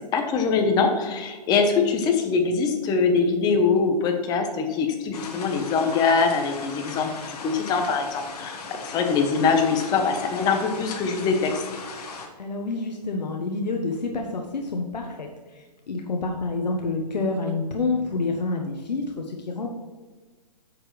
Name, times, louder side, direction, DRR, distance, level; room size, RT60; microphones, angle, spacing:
voice 1, 0.1-11.6, left 5 dB, 20° left, 5 dB, 0.9 m, -23 dB
sound 1, 5.1-12.3, left 4 dB, 65° left, 1.6 m, -38 dB
voice 2, 12.4-19.8, left 3 dB, 85° left, 2 dB, 1.1 m, -28 dB
8.7 x 6.7 x 3.2 m, 1.3 s
hypercardioid pair, 145°, 21 cm